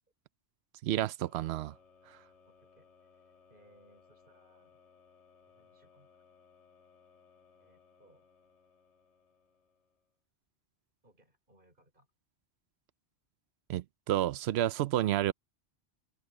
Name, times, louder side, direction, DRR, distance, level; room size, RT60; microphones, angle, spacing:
voice 1, 0.8-1.7 2.1-2.2 13.7-15.3, right 13 dB, 70° right, 0.8 m, -30 dB
sound 1, 1.2-10.1, left 5 dB, 80° left, 2.1 m, -64 dB
voice 2, 2.4-4.8 5.4-6.2 7.5-8.3 11.0-12.1, right 1 dB, 50° right, 4.7 m, -66 dB
omnidirectional pair, 1.1 m